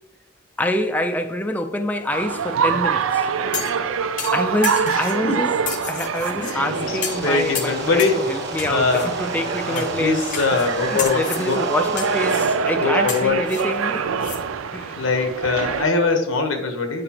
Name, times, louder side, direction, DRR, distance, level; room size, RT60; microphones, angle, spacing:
voice 1, 0.6-3.3 4.3-5.5 5.9-10.2 10.9-14.0 14.7-15.0, left 1 dB, 10° left, 0.3 m, -26 dB
sound 1, 2.1-15.9, right 6 dB, 80° right, 0.4 m, -25 dB
sound 2, 3.5-3.8 4.2-5.2 5.7-6.6 7.0-7.3 7.6-8.2 8.6-9.1 9.8-9.9 10.3-10.7 11.0-11.5 12.0-12.5 13.1-14.4 14.8-14.9, left 7 dB, 40° left, 0.7 m, -31 dB
sound 3, 6.2-12.6, right 3 dB, 60° right, 1.0 m, -32 dB
voice 2, 6.4-8.2 8.7-9.1 9.6-11.6 12.8-13.4 15.0-17.0, left 4 dB, 90° left, 1.1 m, -22 dB
7.9 x 4.9 x 2.9 m
head